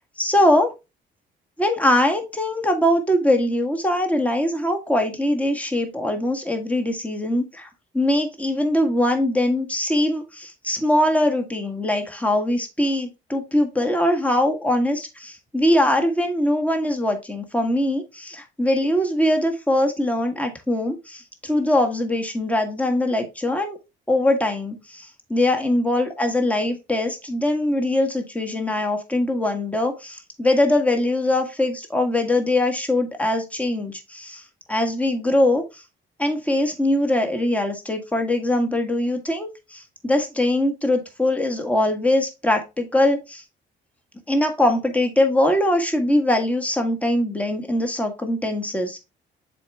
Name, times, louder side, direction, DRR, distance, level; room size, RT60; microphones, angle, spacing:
voice 1, 0.2-0.7 1.6-7.7 7.9-23.8 24.1-34.4 34.7-35.6 36.2-43.4 44.3-49.0, left 1 dB, 5° left, 4 dB, 1.6 m, -22 dB
7.0 x 4.4 x 3.5 m, 0.25 s
cardioid pair, 90°, 20 cm